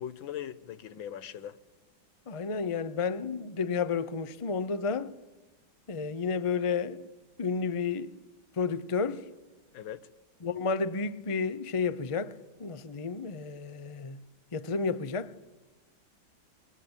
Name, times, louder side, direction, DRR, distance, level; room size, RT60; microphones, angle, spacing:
voice 1, 0.0-1.6 9.7-10.1, left 10 dB, 85° left, 1.8 m, -40 dB
voice 2, 2.3-5.1 5.9-7.1 7.4-8.1 8.6-9.2 10.4-12.3 12.6-14.2 14.5-15.3, left 5 dB, 35° left, 0.5 m, -31 dB
26.5 x 22.0 x 8.9 m
omnidirectional pair, 2.1 m